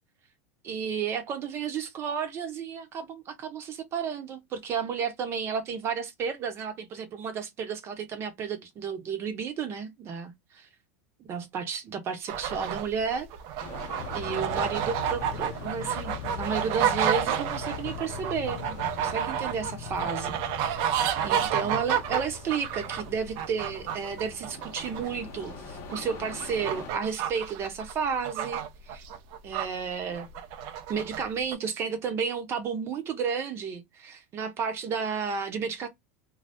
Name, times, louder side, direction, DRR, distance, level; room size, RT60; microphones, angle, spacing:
voice 1, 0.6-10.7 11.2-13.3 13.6-13.7 14.1-20.8 21.2-29.0 29.4-30.3 30.9-35.9, right 6 dB, 40° right, 0.9 m, -32 dB
sound 1, 12.3-29.7 30.1-31.3 31.5-31.6, right 9 dB, 60° right, 0.5 m, -31 dB
sound 2, 13.6-26.9, left 5 dB, 45° left, 1.0 m, -46 dB
sound 3, 14.0-24.3, left 11 dB, 80° left, 0.4 m, -41 dB
2.6 x 2.3 x 3.4 m
supercardioid pair, 125°, 7 cm